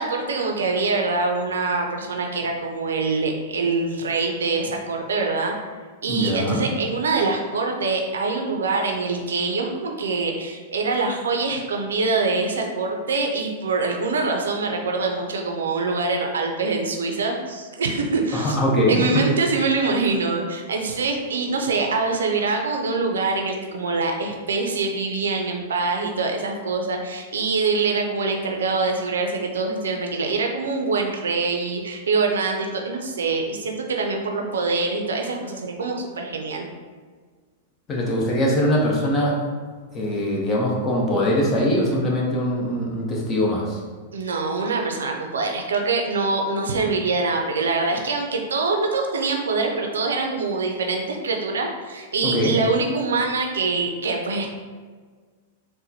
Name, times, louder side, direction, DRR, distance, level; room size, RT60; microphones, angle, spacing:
voice 1, 0.0-5.5 6.0-18.6 18.9-36.7 44.1-54.5, right 3 dB, 85° right, 2 dB, 0.5 m, -24 dB
voice 2, 6.1-6.6 18.3-19.2 37.9-39.4 39.9-43.8 52.2-52.5, equal, 25° left, -3 dB, 0.9 m, -22 dB
4.0 x 2.2 x 2.8 m, 1.5 s
hypercardioid pair, 120°, 0 cm